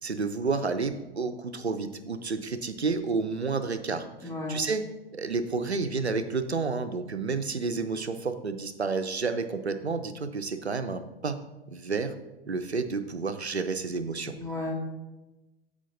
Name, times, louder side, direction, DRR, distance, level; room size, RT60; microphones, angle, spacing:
voice 1, 0.0-4.8 5.1-11.4 11.7-12.1 12.5-14.3, right 4 dB, 85° right, 10 dB, 0.7 m, -30 dB
voice 2, 4.2-4.6 14.3-14.7, left 2 dB, 10° left, -3 dB, 2.0 m, -33 dB
14.5 x 5.1 x 2.6 m, 1.1 s
figure-of-eight pair, 95°, 32 cm